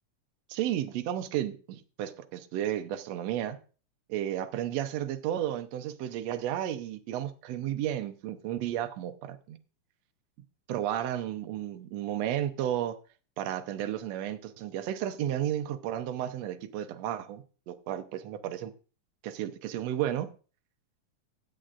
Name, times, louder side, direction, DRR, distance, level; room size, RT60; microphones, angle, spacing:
voice 1, 0.5-3.6 4.1-9.6 10.7-13.0 13.4-18.7 19.2-20.3, right 11 dB, 70° right, 1.7 m, -33 dB
15.5 x 8.7 x 2.5 m
omnidirectional pair, 3.5 m